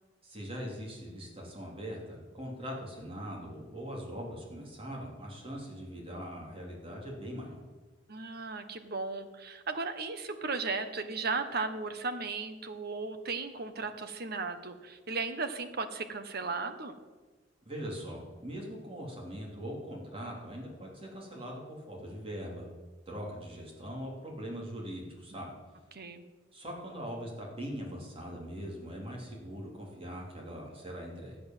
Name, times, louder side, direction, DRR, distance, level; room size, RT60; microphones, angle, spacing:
voice 1, 0.2-7.6 17.7-22.7 23.1-25.5 26.5-31.4, equal, 30° right, -1 dB, 3.5 m, -41 dB
voice 2, 8.1-17.0 25.9-26.2, right 4 dB, 55° right, 9 dB, 1.2 m, -36 dB
12.5 x 8.6 x 7.5 m, 1.3 s
head